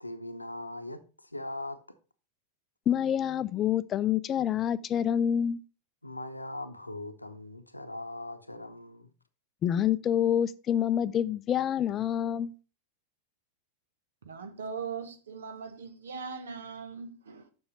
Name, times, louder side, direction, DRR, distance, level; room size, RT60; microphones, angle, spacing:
voice 1, 0.0-1.0 1.3-2.0 6.0-9.1, left 2 dB, 85° left, 0.8 m, -40 dB
voice 2, 2.9-5.6 9.6-12.5, left 9 dB, 30° left, 0.5 m, -27 dB
voice 3, 14.2-17.5, right 5 dB, 65° right, 1.3 m, -40 dB
7.0 x 6.4 x 5.4 m
figure-of-eight pair, 90°, 0 cm